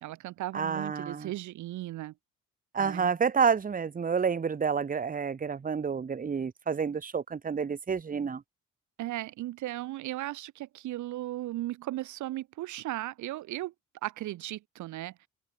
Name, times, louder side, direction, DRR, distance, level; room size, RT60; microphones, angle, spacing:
voice 1, 0.0-2.1 2.8-3.1 9.0-13.7 14.0-15.3, right 15 dB, 75° right, 0.8 m, -36 dB
voice 2, 0.5-1.3 2.7-8.4, right 6 dB, 30° right, 1.0 m, -29 dB
cardioid pair, 90°, 30 cm